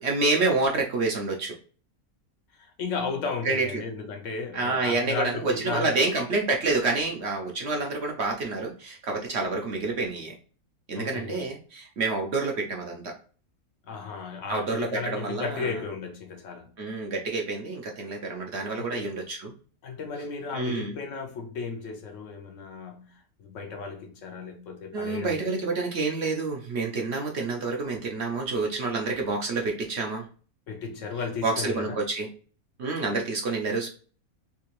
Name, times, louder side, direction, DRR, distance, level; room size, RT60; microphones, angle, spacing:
voice 1, 0.0-1.5 3.4-3.8 4.5-10.3 10.9-13.1 14.5-15.7 16.8-19.5 20.5-20.9 24.9-30.3 31.4-32.3 32.8-33.9, right 3 dB, 60° right, 0.8 m, -28 dB
voice 2, 2.5-6.0 10.9-11.4 13.8-16.7 18.7-19.1 19.8-25.7 30.7-32.0, left 5 dB, 65° left, 0.9 m, -35 dB
3.5 x 2.8 x 2.9 m
omnidirectional pair, 1.6 m